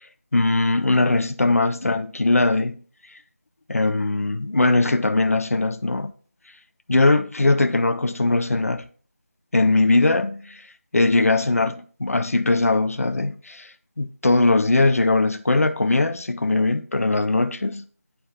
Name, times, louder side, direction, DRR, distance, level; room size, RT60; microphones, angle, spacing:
voice 1, 0.3-2.8 3.7-6.1 6.9-8.9 9.5-10.6 10.9-13.7 14.0-17.9, left 2 dB, 70° left, 0.6 m, -20 dB
8.7 x 4.5 x 3.6 m
figure-of-eight pair, 165°, 8 cm